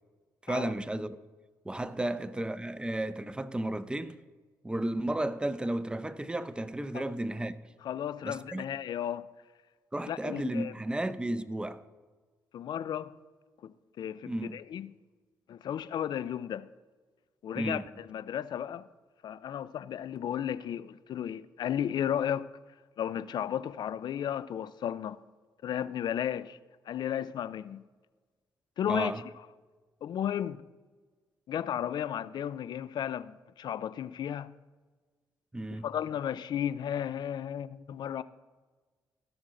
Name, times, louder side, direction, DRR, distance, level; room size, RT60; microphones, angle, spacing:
voice 1, 0.4-1.2 1.7-4.2 4.6-7.6 8.2-8.6 9.9-11.8 14.2-14.6 17.6-17.9 28.9-29.2 35.5-35.9, right 1 dB, 10° right, 0.6 m, -33 dB
voice 2, 7.8-9.3 10.1-10.7 12.5-13.1 13.6-14.9 15.5-16.7 17.4-18.9 19.2-22.5 23.0-25.2 25.6-26.6 26.9-27.8 28.8-29.3 30.0-30.6 31.5-34.5 35.8-38.2, left 9 dB, 70° left, 0.4 m, -34 dB
16.0 x 6.2 x 3.8 m
supercardioid pair, 60°, 8 cm